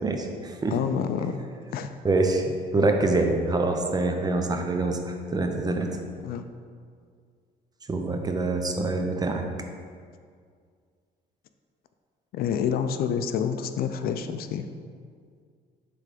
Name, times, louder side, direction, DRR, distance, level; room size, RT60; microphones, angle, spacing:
voice 1, 0.0-0.8 2.0-2.4 2.7-5.9 7.9-9.4, right 2 dB, 25° right, 3 dB, 0.7 m, -25 dB
voice 2, 0.7-1.4 1.7-1.9 6.2-6.4 12.3-14.7, left 7 dB, 60° left, 9 dB, 0.4 m, -28 dB
7.2 x 3.4 x 5.0 m, 2.1 s
cardioid pair, 110°, 17 cm